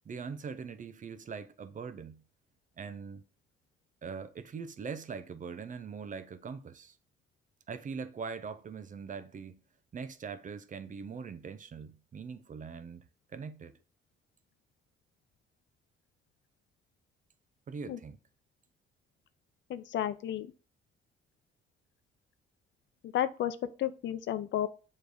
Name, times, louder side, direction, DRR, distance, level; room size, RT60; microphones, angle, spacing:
voice 1, 0.0-2.2 2.8-3.2 4.0-7.0 7.7-9.6 9.9-13.0 13.3-13.7 17.7-18.2, right 5 dB, 40° right, 0.7 m, -42 dB
voice 2, 19.7-20.5 23.0-24.7, left 11 dB, 70° left, 0.6 m, -32 dB
7.0 x 3.3 x 4.8 m
cardioid pair, 90°, 20 cm